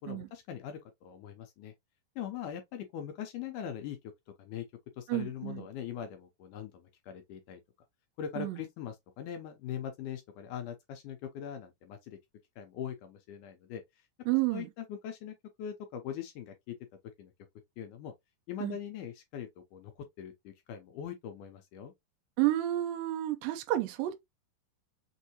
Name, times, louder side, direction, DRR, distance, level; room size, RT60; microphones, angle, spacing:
voice 1, 0.0-1.7 2.2-4.0 4.4-4.7 5.0-7.6 8.2-12.2 12.6-13.8 14.5-16.8 17.2-17.3 17.8-18.1 18.5-21.9, left 9 dB, 75° left, 1.9 m, -41 dB
voice 2, 5.1-5.7 8.4-8.6 14.3-14.7 18.6-18.8 22.4-24.1, right 16 dB, 80° right, 2.4 m, -30 dB
6.3 x 2.7 x 2.9 m
omnidirectional pair, 4.2 m